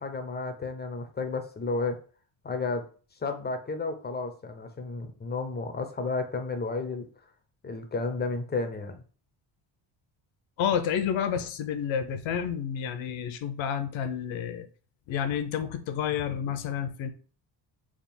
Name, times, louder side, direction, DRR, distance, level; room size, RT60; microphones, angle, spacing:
voice 1, 0.0-2.0 2.4-2.9 3.2-7.1 7.6-9.0, left 3 dB, 20° left, 7 dB, 0.5 m, -32 dB
voice 2, 10.6-14.7 15.1-17.1, left 8 dB, 70° left, 10 dB, 0.7 m, -30 dB
3.6 x 2.4 x 4.2 m, 0.39 s
cardioid pair, 130°, 48 cm